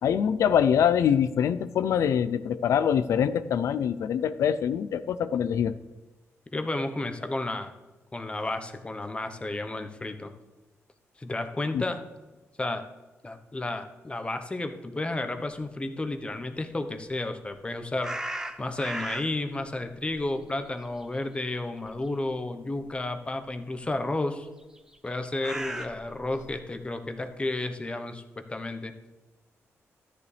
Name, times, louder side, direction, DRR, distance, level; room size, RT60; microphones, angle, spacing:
voice 1, 0.0-5.7 11.7-11.8, left 8 dB, 85° left, 14 dB, 0.5 m, -24 dB
voice 2, 6.5-7.7 8.1-10.3 11.2-12.0 12.6-12.8 13.2-18.1 18.6-24.5 25.0-28.9, left 2 dB, 20° left, 7 dB, 1.0 m, -32 dB
sound 1, 18.0-19.5 19.9-21.6 21.8-22.1 22.9-23.0 24.7-26.5, right 1 dB, 10° right, 0.8 m, -36 dB
13.5 x 9.7 x 3.4 m, 1.1 s
cardioid pair, 95°, 5 cm